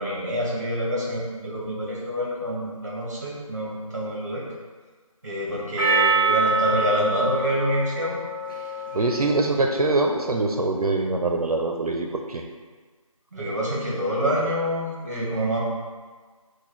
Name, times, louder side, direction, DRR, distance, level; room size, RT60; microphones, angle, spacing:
voice 1, 0.0-4.4 5.2-8.2 13.3-15.6, equal, 30° right, -4 dB, 1.0 m, -26 dB
Percussion, 5.8-10.4, right 3 dB, 35° left, 0.8 m, -26 dB
voice 2, 8.9-12.4, right 2 dB, 85° right, 2 dB, 0.5 m, -23 dB
4.0 x 2.2 x 4.6 m, 1.4 s
figure-of-eight pair, 170°, 18 cm